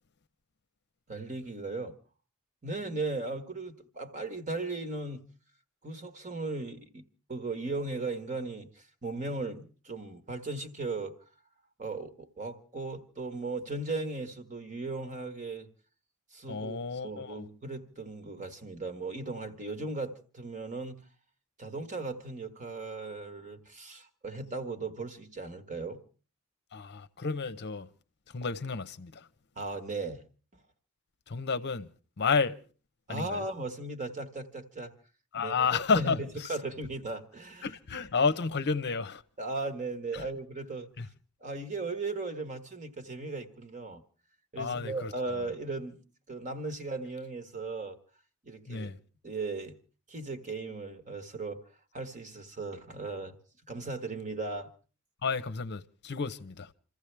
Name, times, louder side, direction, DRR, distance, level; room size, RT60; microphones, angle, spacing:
voice 1, 1.1-1.9 2.6-5.2 5.8-11.2 11.8-15.7 16.3-21.0 21.6-26.0 29.6-30.2 33.1-34.9 35.3-37.7 39.4-40.9 41.4-44.0 44.5-46.0 46.3-48.0 48.4-48.9 49.2-49.7 50.1-51.6 51.9-53.4 53.7-54.7, right 3 dB, 35° right, 1.5 m, -37 dB
voice 2, 16.5-17.5 26.7-27.9 28.3-29.2 31.3-31.9 32.2-32.6 33.1-33.4 35.3-36.2 37.6-39.2 41.0-41.1 44.6-45.1 48.7-49.0 55.2-56.7, left 5 dB, 50° left, 0.7 m, -31 dB
27.5 x 15.0 x 3.3 m
head